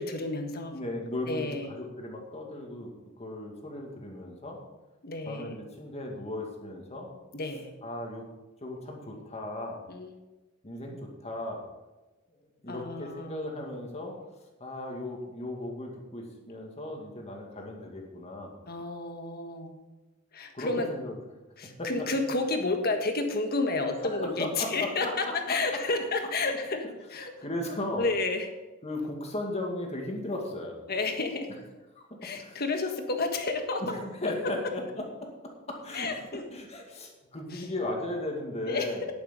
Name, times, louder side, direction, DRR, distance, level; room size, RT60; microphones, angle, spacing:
voice 1, 0.0-0.7 1.3-1.7 5.0-5.6 7.3-7.7 9.9-10.1 10.8-11.0 12.7-13.4 18.7-19.8 20.3-20.9 21.6-27.3 28.0-28.5 30.9-31.5 32.2-33.8 35.9-36.4 37.5-37.6 38.6-38.9, left 3 dB, 50° left, 5 dB, 1.6 m, -31 dB
voice 2, 0.7-2.9 3.2-4.6 5.2-7.1 7.8-8.3 8.6-9.8 10.6-11.6 12.6-14.2 14.6-18.6 20.5-21.2 21.8-21.9 24.0-25.6 26.4-26.6 27.4-28.1 28.8-30.8 32.0-32.6 33.8-36.2 36.5-39.1, left 1 dB, 35° left, 1 dB, 2.3 m, -36 dB
10.5 x 9.9 x 5.3 m, 1.1 s
head